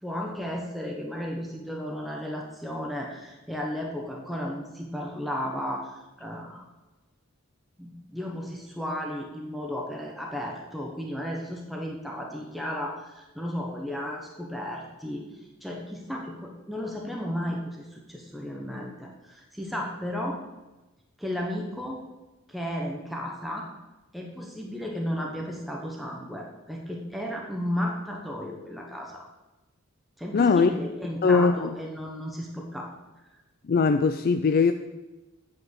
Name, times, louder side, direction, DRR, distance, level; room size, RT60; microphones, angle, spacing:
voice 1, 0.0-6.6 7.8-20.4 21.2-22.0 22.5-23.7 24.1-29.3 30.2-32.9, equal, ahead, -1 dB, 1.0 m, -34 dB
voice 2, 30.3-30.7 31.2-31.7 33.6-34.7, left 4 dB, 45° left, 8 dB, 0.4 m, -20 dB
8.8 x 5.2 x 7.9 m, 1.1 s
head